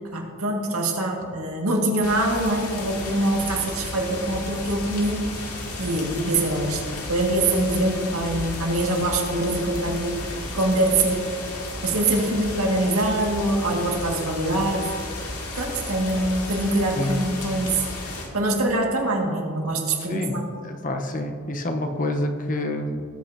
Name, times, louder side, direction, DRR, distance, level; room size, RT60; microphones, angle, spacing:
voice 1, 0.0-5.5 5.8-10.2 10.5-11.3 11.8-14.8 15.6-17.8 18.3-20.5, right 1 dB, 70° right, 1 dB, 1.8 m, -24 dB
sound 1, 2.0-18.3, left 2 dB, 80° left, 2.2 m, -33 dB
voice 2, 20.1-23.0, left 1 dB, 35° left, 5 dB, 0.8 m, -27 dB
18.5 x 9.1 x 2.7 m, 2.4 s
head